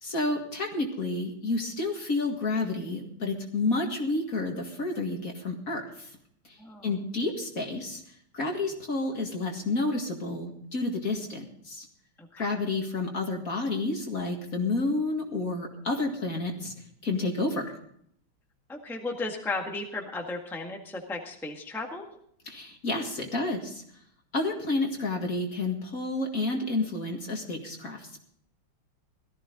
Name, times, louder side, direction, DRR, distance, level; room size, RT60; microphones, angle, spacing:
voice 1, 0.0-6.1 6.5-6.6 6.8-8.0 8.3-11.9 12.4-16.7 17.0-17.7 22.5-23.8 24.3-28.2, left 2 dB, 40° left, 2 dB, 2.3 m, -30 dB
voice 2, 6.6-6.9 12.2-12.6 18.7-22.1, left 3 dB, ahead, 2 dB, 1.5 m, -35 dB
18.0 x 14.0 x 3.8 m, 0.66 s
omnidirectional pair, 2.3 m